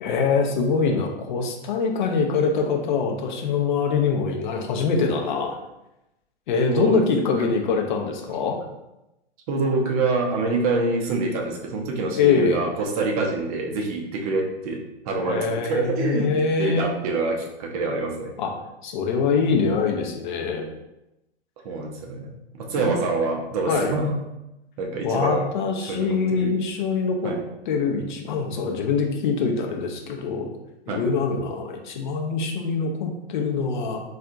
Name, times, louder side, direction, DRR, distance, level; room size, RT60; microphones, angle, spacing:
voice 1, 0.0-5.6 6.5-8.6 12.2-12.6 15.2-16.9 18.4-18.5 18.8-20.7 22.8-22.9 23.6-23.9 25.0-27.3 27.7-30.5 30.9-34.0, left 5 dB, 45° left, 2 dB, 0.6 m, -24 dB
voice 2, 6.7-7.0 9.5-16.3 16.6-18.3 21.6-24.2 24.8-25.5 25.8-26.5 27.2-27.4 30.9-31.0, right 3 dB, 35° right, 1 dB, 0.6 m, -26 dB
4.2 x 2.4 x 2.5 m, 0.91 s
figure-of-eight pair, 115°, 33 cm